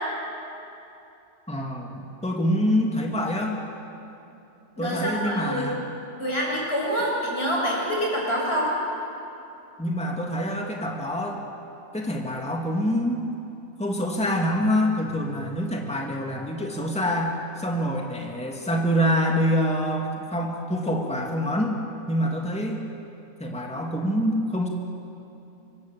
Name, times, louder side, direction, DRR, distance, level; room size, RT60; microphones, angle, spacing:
voice 1, 1.5-3.6 4.8-5.8 9.8-11.4 11.9-13.2 13.8-21.8 22.1-22.8 23.4-24.7, equal, 5° left, 0 dB, 2.5 m, -26 dB
voice 2, 4.8-5.7 6.2-8.7, equal, 45° left, -4 dB, 7.7 m, -26 dB
25.5 x 25.5 x 7.7 m, 2.8 s
omnidirectional pair, 1.4 m